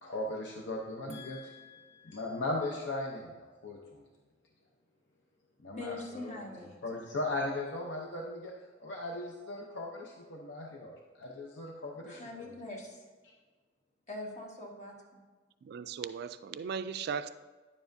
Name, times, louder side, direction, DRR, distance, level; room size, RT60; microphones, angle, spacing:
voice 1, 0.0-1.5 2.0-4.0 5.6-6.4 6.8-8.5 8.8-12.5, left 2 dB, 65° left, -1 dB, 0.7 m, -38 dB
voice 2, 1.1-2.2 5.7-6.8 12.1-13.0 14.1-14.9, left 2 dB, 40° left, -1 dB, 1.4 m, -44 dB
voice 3, 15.6-17.3, right 6 dB, 60° right, 12 dB, 0.3 m, -37 dB
9.8 x 7.2 x 2.6 m, 1.3 s
head